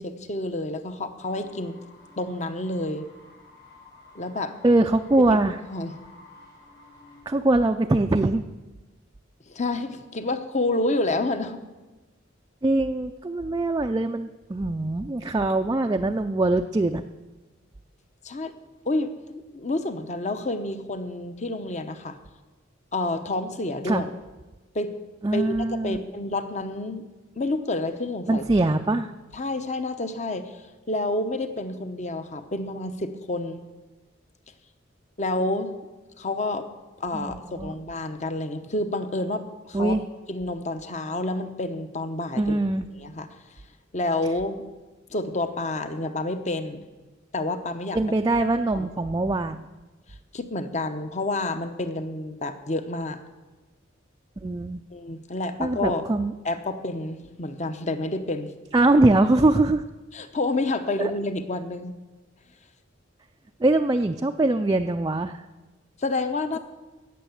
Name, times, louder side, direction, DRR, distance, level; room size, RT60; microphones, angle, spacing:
voice 1, 0.0-1.8 2.2-3.1 4.1-4.6 5.2-5.4 5.7-6.0 9.5-11.6 18.2-18.5 18.9-22.2 22.9-24.1 24.7-24.9 25.3-27.0 27.4-28.4 29.3-30.5 30.9-33.6 35.2-35.7 36.2-36.7 37.0-39.9 40.3-42.5 43.0-43.3 43.9-44.6 45.1-46.8 47.3-48.0 48.7-48.9 50.3-53.2 54.9-56.0 56.4-58.5 60.1-61.9 66.0-66.6, left 2 dB, 35° left, 9 dB, 0.9 m, -29 dB
sound 1, 1.2-7.2, left 2 dB, 60° left, 4.2 m, -52 dB
voice 2, 4.6-5.6 7.3-8.4 12.6-17.0 23.8-24.0 25.2-26.0 28.3-29.1 37.1-37.8 39.7-40.0 42.4-42.9 47.9-49.7 54.4-54.8 55.6-56.3 58.7-59.8 63.6-65.4, right 2 dB, 20° right, 5 dB, 0.4 m, -22 dB
17.0 x 6.8 x 7.1 m, 1.2 s
head